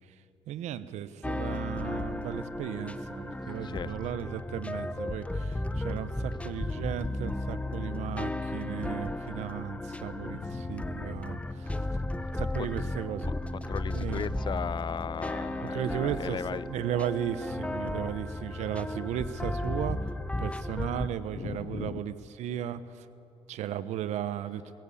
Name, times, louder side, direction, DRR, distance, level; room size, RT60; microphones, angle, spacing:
voice 1, 0.5-11.9 12.4-13.3 13.9-14.3 15.6-20.1 20.4-23.1 23.5-24.6, right 10 dB, 80° right, 14 dB, 0.9 m, -35 dB
sound 1, 1.2-21.1, left 2 dB, 10° left, 0.9 m, -34 dB
voice 2, 10.2-10.8 11.5-11.6 13.7-16.7 21.3-22.0, left 7 dB, 40° left, 21 dB, 0.4 m, -37 dB
22.0 x 16.5 x 8.5 m, 2.7 s
cardioid pair, 80°, 12 cm